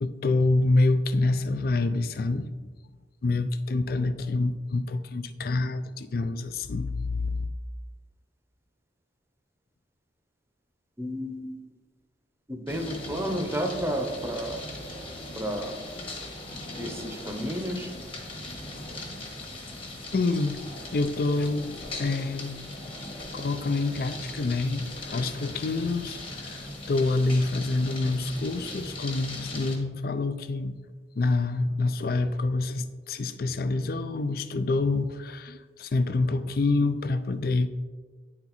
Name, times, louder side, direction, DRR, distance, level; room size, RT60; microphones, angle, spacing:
voice 1, 0.0-2.7 3.2-7.5 20.1-20.6 20.9-21.7 22.0-22.9 23.3-30.8 31.2-37.7, left 3 dB, 55° left, 12 dB, 0.4 m, -27 dB
voice 2, 11.0-11.6 12.5-14.6 15.4-15.8 16.8-17.9, equal, 15° right, 4 dB, 0.7 m, -31 dB
sound 1, 12.7-29.8, left 1 dB, 30° left, 1.2 m, -39 dB
9.7 x 4.4 x 4.0 m, 1.4 s
head